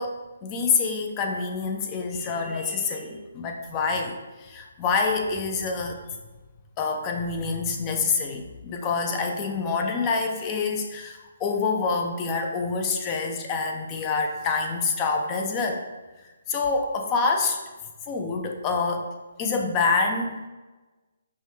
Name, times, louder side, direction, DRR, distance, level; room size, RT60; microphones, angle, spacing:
voice 1, 0.0-6.0 6.8-15.8 16.5-17.6 18.1-19.1 19.4-20.4, left 4 dB, 20° left, 3 dB, 0.4 m, -26 dB
5.4 x 2.2 x 3.1 m, 1.2 s
hypercardioid pair, 160°, 0 cm